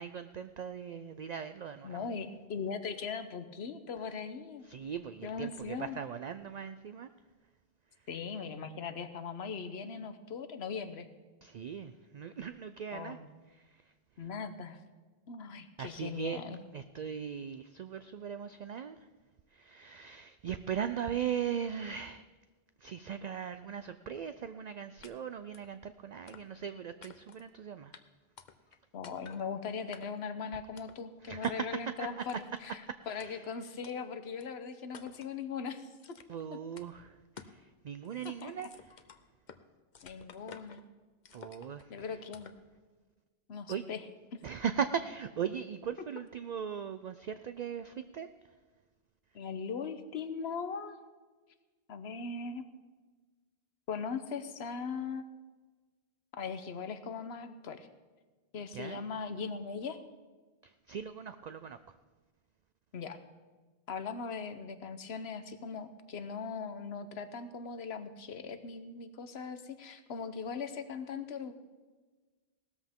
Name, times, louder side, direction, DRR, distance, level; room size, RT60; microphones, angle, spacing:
voice 1, 0.0-2.1 4.6-7.1 11.4-13.2 13.5-13.9 15.8-16.4 16.7-19.1 19.5-22.2 22.8-27.9 31.2-32.2 32.9-33.5 36.3-39.0 41.3-41.9 43.7-43.9 44.4-48.3 58.7-59.0 60.6-62.0, right 7 dB, 55° right, 10 dB, 0.5 m, -39 dB
voice 2, 1.8-4.7 5.2-6.0 8.1-11.1 12.9-13.3 14.2-14.8 15.3-16.6 28.9-32.8 33.1-35.9 38.2-38.7 40.0-40.8 41.9-42.5 43.5-44.0 44.3-44.4 49.3-51.0 51.9-52.7 53.9-55.3 56.4-57.9 58.5-60.0 62.9-63.2 63.9-71.5, left 5 dB, 85° left, 10 dB, 1.1 m, -39 dB
sound 1, 25.0-25.1 25.5-25.7 26.3-26.7 27.0-27.5 27.9-28.0 28.4-28.8 29.0-29.4 29.9-30.3 30.8-31.0 31.4-31.5 32.3-32.7 33.2-33.3 33.8-33.9 34.4-34.5 34.9-35.3 36.0-36.4 36.8-36.9 37.4-37.6 37.9-39.6 39.9-40.8 41.2-41.8 42.3-42.6, left 6 dB, 50° left, 0.8 m, -53 dB
18.0 x 13.5 x 3.6 m, 1.3 s
omnidirectional pair, 1.0 m